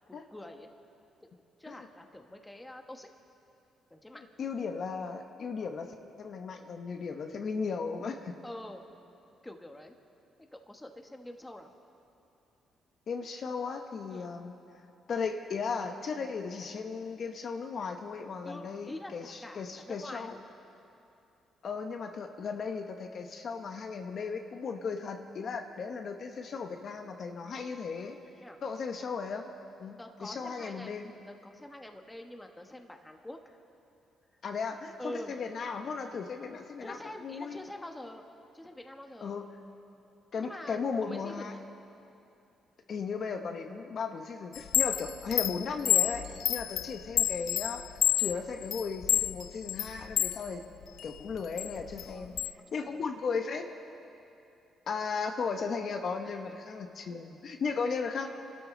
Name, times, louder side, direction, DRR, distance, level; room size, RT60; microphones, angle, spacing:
voice 1, 0.1-0.7 1.6-3.1 3.9-4.2 8.4-8.9 9.4-10.0 10.4-11.7 14.1-14.4 18.4-20.3 28.4-28.6 30.0-30.9 31.3-33.6 35.0-35.3 36.8-38.2 38.5-39.4 40.4-41.6 46.5-46.6 52.0-53.1 56.2-56.4, left 1 dB, 10° left, 4 dB, 1.3 m, -46 dB
voice 2, 4.4-8.4 13.1-14.5 15.1-20.4 21.6-28.2 28.6-29.5 29.8-31.1 34.4-37.0 37.2-37.6 39.2-39.4 40.3-41.6 42.9-50.6 51.0-52.3 52.7-53.6 54.9-58.3, left 5 dB, 55° left, 5 dB, 1.0 m, -36 dB
Chime, 44.5-50.4 50.8-52.5, left 11 dB, 75° left, 0.4 m, -29 dB
27.5 x 12.5 x 3.9 m, 2.7 s
cardioid pair, 90°, 0 cm